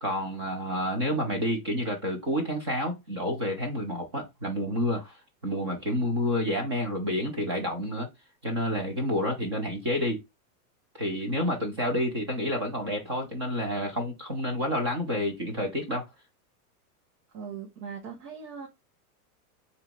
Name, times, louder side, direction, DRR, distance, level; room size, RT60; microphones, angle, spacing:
voice 1, 0.0-5.2 5.4-8.1 8.4-10.2 10.9-16.0, equal, 20° right, 0.3 m, -29 dB
voice 2, 17.3-18.7, right 6 dB, 70° right, 1.6 m, -39 dB
3.8 x 2.8 x 3.4 m
supercardioid pair, 165°, 47 cm